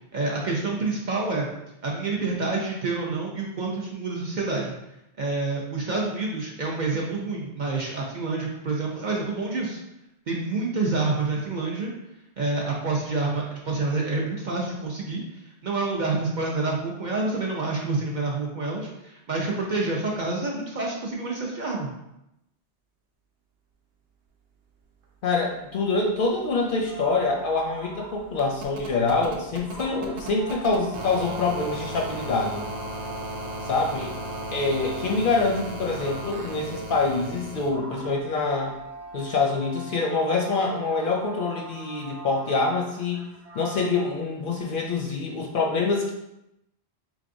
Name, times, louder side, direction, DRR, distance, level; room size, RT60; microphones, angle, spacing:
voice 1, 0.1-1.5 1.8-4.7 5.2-9.8 10.3-11.9 12.4-15.2 15.6-21.9, right 3 dB, 55° right, -2 dB, 0.6 m, -28 dB
voice 2, 25.2-32.7 33.6-34.2 34.5-38.7 39.1-43.2 43.5-46.1, left 3 dB, 60° left, 0 dB, 0.6 m, -25 dB
sound 1, 26.5-26.6 26.8-37.7 39.1-39.2, right 1 dB, 80° right, 0.9 m, -37 dB
sound 2, 26.9-28.4 29.1-29.2 29.6-36.8 37.1-44.2, right 3 dB, 35° right, 0.9 m, -41 dB
3.7 x 3.2 x 2.5 m, 0.87 s
omnidirectional pair, 1.1 m